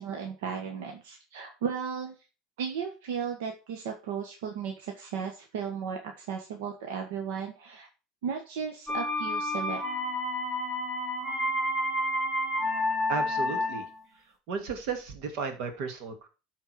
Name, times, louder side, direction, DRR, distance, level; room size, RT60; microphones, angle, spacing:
voice 1, 0.0-2.1 2.6-7.9 8.2-9.8, right 7 dB, 90° right, 3 dB, 1.4 m, -35 dB
sound 1, 8.9-14.0, left 1 dB, ahead, 2.1 m, -30 dB
voice 2, 13.1-13.9 14.5-16.3, right 5 dB, 65° right, 5 dB, 2.4 m, -34 dB
13.0 x 4.4 x 4.6 m, 0.32 s
supercardioid pair, 130°, 0 cm